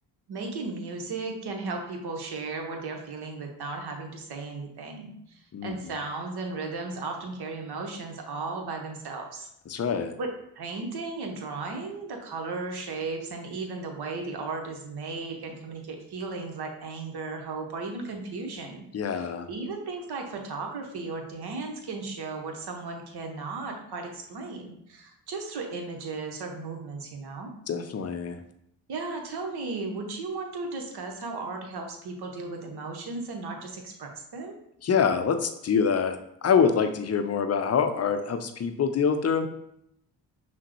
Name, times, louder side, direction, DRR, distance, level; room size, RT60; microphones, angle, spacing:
voice 1, 0.3-9.5 10.2-10.3 10.5-27.5 28.9-34.6, right 3 dB, 55° right, 2 dB, 1.0 m, -35 dB
voice 2, 9.7-10.1 18.9-19.5 27.7-28.4 34.8-39.5, left 6 dB, 35° left, 8 dB, 0.5 m, -25 dB
5.7 x 2.2 x 3.0 m, 0.75 s
hypercardioid pair, 40°, 48 cm